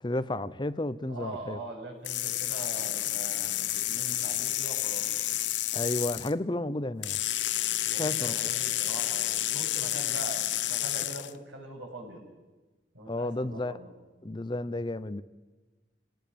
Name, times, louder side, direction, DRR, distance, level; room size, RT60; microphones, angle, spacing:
voice 1, 0.0-1.6 5.7-7.2 8.0-8.3 13.1-13.8 14.2-15.2, left 2 dB, 25° left, 15 dB, 0.7 m, -32 dB
voice 2, 1.1-5.1 7.8-12.2 12.9-13.9, right 1 dB, 90° right, 1 dB, 7.6 m, -42 dB
sound 1, 2.0-6.3 7.0-11.3, left 14 dB, 85° left, 0.8 m, -30 dB
28.0 x 18.5 x 7.0 m, 1.2 s
head